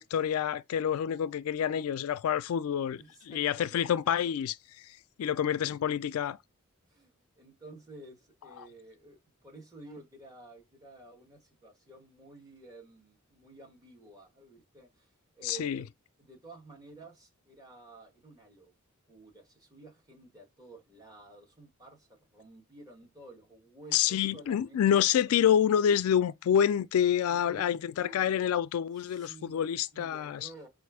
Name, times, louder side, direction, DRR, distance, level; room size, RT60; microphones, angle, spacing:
voice 1, 0.0-4.6 4.8-6.4 15.4-15.8 23.9-30.5, left 9 dB, 75° left, 0.3 m, -28 dB
voice 2, 3.0-4.2 6.8-15.9 16.2-18.7 19.1-25.2 27.3-28.5 28.9-29.6 29.9-30.7, right 2 dB, 15° right, 1.4 m, -52 dB
4.2 x 2.5 x 4.7 m
head